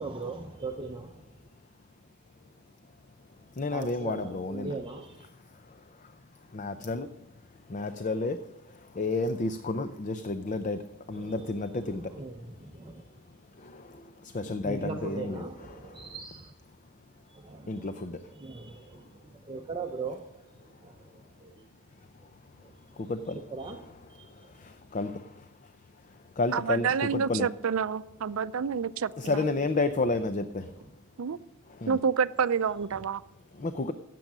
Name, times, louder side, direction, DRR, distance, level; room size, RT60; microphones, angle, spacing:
voice 1, 0.0-1.3 3.7-5.3 11.2-11.3 12.2-13.0 14.6-16.5 17.3-17.9 18.4-21.7 22.5-23.0 23.5-23.8 24.1-24.5 32.9-33.0, right 3 dB, 25° right, 0.8 m, -40 dB
voice 2, 1.3-4.7 5.2-16.2 16.8-19.5 20.6-27.6 28.2-32.1 33.2-33.9, left 3 dB, 35° left, 0.6 m, -34 dB
voice 3, 26.8-29.1 31.2-31.4 31.9-33.2, right 6 dB, 70° right, 0.5 m, -28 dB
16.0 x 7.7 x 6.1 m
head